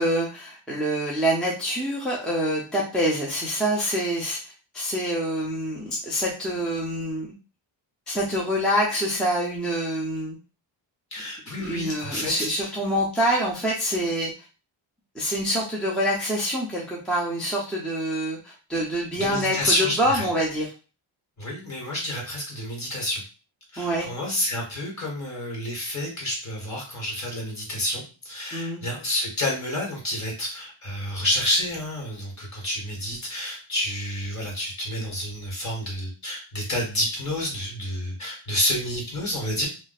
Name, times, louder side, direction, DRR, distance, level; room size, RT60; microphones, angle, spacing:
voice 1, 0.0-7.3 8.1-10.4 11.6-14.3 15.1-20.7 23.8-24.1 28.5-28.8, equal, ahead, -4 dB, 0.5 m, -26 dB
voice 2, 11.1-12.7 19.2-20.2 21.4-23.2 23.7-39.7, left 1 dB, 35° left, -1 dB, 1.5 m, -29 dB
2.5 x 2.2 x 4.0 m, 0.34 s
cardioid pair, 130°, 46 cm